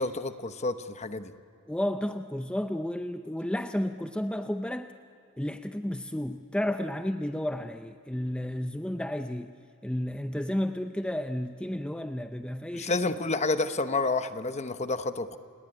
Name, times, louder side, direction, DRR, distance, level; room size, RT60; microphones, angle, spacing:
voice 1, 0.0-1.3 12.7-15.4, left 3 dB, 30° left, 10 dB, 1.0 m, -29 dB
voice 2, 1.7-4.9 5.4-9.5 9.8-13.0, left 1 dB, 5° left, 7 dB, 0.6 m, -32 dB
29.5 x 18.5 x 10.0 m, 2.6 s
head